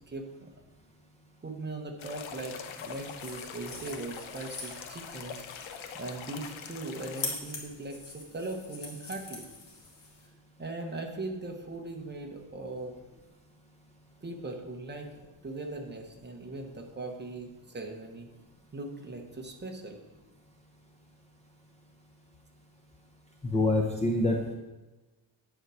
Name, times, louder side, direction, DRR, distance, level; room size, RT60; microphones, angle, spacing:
voice 1, 0.1-0.5 1.4-5.4 5.9-9.5 10.6-13.0 14.2-15.1 15.4-18.3 18.7-20.0, right 2 dB, 20° right, 2 dB, 1.0 m, -39 dB
sound 1, 2.0-7.4, left 7 dB, 85° left, 0.9 m, -43 dB
sound 2, 2.8-10.3, left 3 dB, 65° left, 2.2 m, -44 dB
voice 2, 23.4-24.5, left 2 dB, 15° left, 0 dB, 0.6 m, -26 dB
9.9 x 4.7 x 6.2 m, 1.1 s
wide cardioid pair, 175°, 47 cm